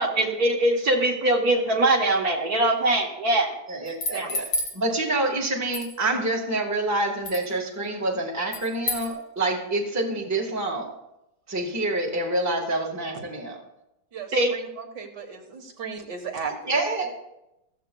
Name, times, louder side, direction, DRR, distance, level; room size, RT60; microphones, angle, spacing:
voice 1, 0.0-3.6 4.1-4.3 14.3-14.5, right 1 dB, 60° right, 2 dB, 1.6 m, -22 dB
voice 2, 3.7-4.5 4.7-10.9 11.5-13.6 16.7-17.1, right 2 dB, 10° right, 1 dB, 1.3 m, -27 dB
sound 1, 3.9-4.8 5.7-5.9 7.2-7.5 8.5-9.1, left 2 dB, 70° left, 2.2 m, -29 dB
voice 3, 14.1-16.8, right 6 dB, 75° right, 3 dB, 2.0 m, -36 dB
14.5 x 14.0 x 2.3 m, 0.88 s
omnidirectional pair, 1.9 m